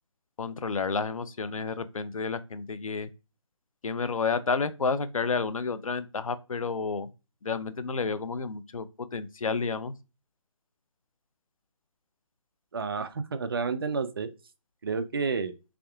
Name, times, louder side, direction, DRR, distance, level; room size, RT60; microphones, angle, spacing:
voice 1, 0.4-3.1 3.8-7.1 7.4-8.8 9.1-9.9, left 4 dB, 85° left, 0.6 m, -30 dB
voice 2, 12.7-14.3 14.8-15.5, right 5 dB, 45° right, 0.4 m, -30 dB
3.7 x 3.4 x 2.3 m
figure-of-eight pair, 160°, 17 cm